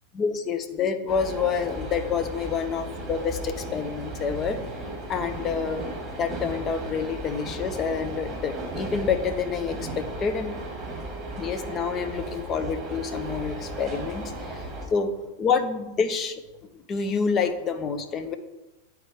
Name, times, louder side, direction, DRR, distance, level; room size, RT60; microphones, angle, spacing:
voice 1, 0.1-4.6 5.1-5.8 6.1-10.6 11.4-15.1 15.4-16.4 16.7-18.3, left 6 dB, 30° left, 8 dB, 0.7 m, -28 dB
sound 1, 1.1-14.9, right 1 dB, 20° right, 1.7 m, -35 dB
9.3 x 4.5 x 3.5 m, 1.0 s
figure-of-eight pair, 90°, 0 cm